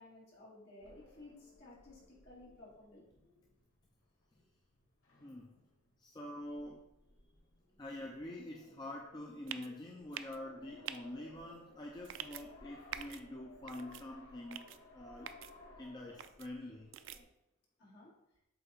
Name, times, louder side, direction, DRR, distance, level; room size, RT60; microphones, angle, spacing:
voice 1, 0.0-3.2 17.8-18.1, left 2 dB, 50° left, -6 dB, 2.3 m, -56 dB
sound 1, 0.8-17.2, left 2 dB, 90° left, 1.7 m, -59 dB
voice 2, 5.2-5.5 6.0-6.9 7.8-14.7 14.9-15.3 15.8-16.9, left 1 dB, 20° left, -1 dB, 0.5 m, -46 dB
sound 2, 9.5-9.7 10.1-10.4 10.9-11.0 12.0-12.4 12.9-13.2 13.7-14.0 14.5-14.8 15.3-15.5 16.2-16.5 16.9-17.2, right 10 dB, 60° right, 0.3 m, -45 dB
7.8 x 2.9 x 4.3 m, 0.85 s
head